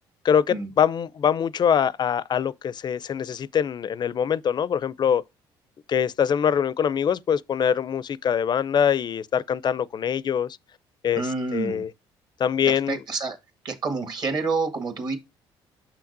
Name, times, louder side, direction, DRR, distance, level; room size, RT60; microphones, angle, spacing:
voice 1, 0.2-5.2 5.9-10.6 11.0-11.9 12.4-13.0, left 8 dB, 45° left, 0.4 m, -23 dB
voice 2, 11.1-11.8 12.7-13.4 13.6-15.2, right 4 dB, 45° right, 1.7 m, -28 dB
6.6 x 5.9 x 2.6 m
supercardioid pair, 75°, 10 cm